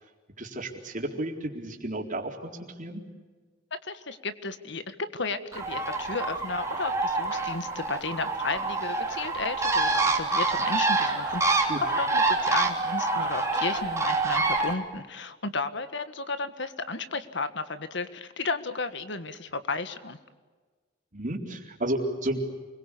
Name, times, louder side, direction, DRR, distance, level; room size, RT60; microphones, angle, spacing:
voice 1, 0.4-3.0 11.7-11.8 21.1-22.4, right 1 dB, 45° right, 2 dB, 4.0 m, -32 dB
voice 2, 3.8-20.2, left 3 dB, 65° left, 11 dB, 1.7 m, -33 dB
Bird, 5.5-14.7, right 3 dB, 15° right, 3.4 m, -27 dB
29.0 x 22.5 x 8.5 m, 1.4 s
head